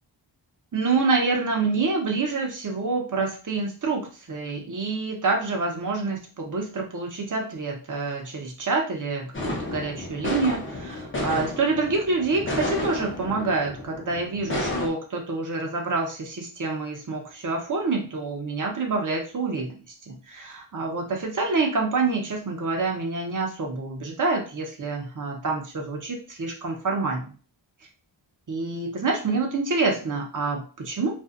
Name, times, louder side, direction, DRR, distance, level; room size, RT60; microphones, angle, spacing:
voice 1, 0.7-19.8 20.1-27.3 28.5-31.1, right 3 dB, 40° right, 1 dB, 0.8 m, -27 dB
sound 1, 9.3-14.9, left 1 dB, 25° left, 0.7 m, -31 dB
2.6 x 2.4 x 2.4 m, 0.37 s
wide cardioid pair, 85°, 47 cm